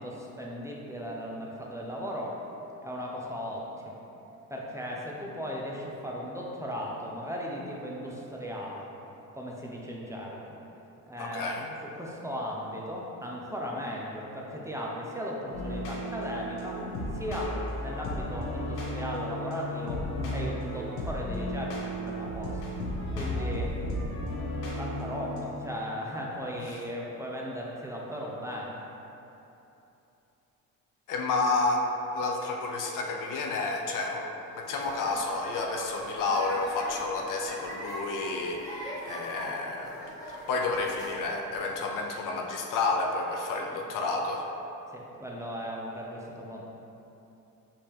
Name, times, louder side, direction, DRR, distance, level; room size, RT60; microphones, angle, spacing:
voice 1, 0.0-2.4 2.8-4.0 4.5-8.9 9.3-10.4 11.1-11.5 11.8-16.8 17.1-22.6 23.2-23.8 24.8-28.8 43.7-43.8 44.9-46.6, equal, 10° right, -3 dB, 0.6 m, -37 dB
voice 2, 11.2-11.7 26.7-26.8 31.1-40.1 40.5-44.5, left 3 dB, 65° left, 1 dB, 0.6 m, -30 dB
sound 1, 15.5-25.4, left 1 dB, 85° left, 1.0 m, -34 dB
sound 2, 34.6-41.7, equal, 10° left, 1.3 m, -41 dB
5.3 x 2.8 x 3.4 m, 2.9 s
cardioid pair, 85°, 36 cm